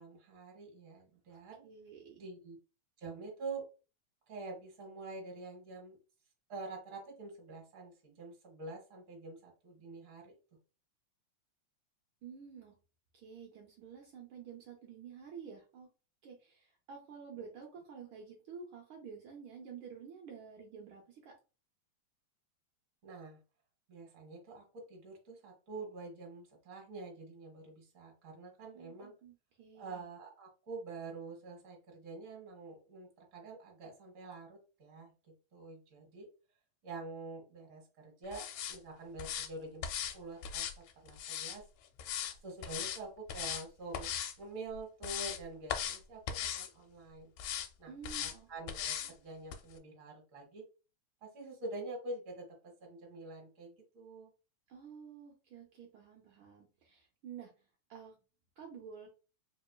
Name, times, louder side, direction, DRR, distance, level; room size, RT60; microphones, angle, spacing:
voice 1, 0.0-1.6 2.2-2.6 3.0-3.6 4.3-6.0 6.5-10.4 17.3-17.4 23.0-23.4 23.9-29.1 29.7-35.1 35.5-36.3 36.8-39.8 40.1-41.6 42.4-44.1 44.4-47.3 47.8-47.9 48.2-50.6 51.2-54.3, right 3 dB, 45° right, 1 dB, 1.1 m, -46 dB
voice 2, 1.6-2.2 12.2-12.7 13.1-15.9 16.2-21.4 28.6-30.1 47.9-48.5 54.7-57.5 57.9-58.1 58.6-59.1, right 6 dB, 90° right, 0 dB, 1.1 m, -50 dB
sound 1, 38.3-38.8 39.2-39.5 39.8-40.2 40.4-41.6 42.0-42.3 42.6-43.0 43.3-43.6 43.9-44.3 44.7-45.4 45.7-46.0 46.3-46.7 47.4-47.7 48.0-48.3 48.7-49.1 49.5-49.6, left 9 dB, 80° left, 1.7 m, -38 dB
4.2 x 2.9 x 2.2 m, 0.32 s
omnidirectional pair, 3.3 m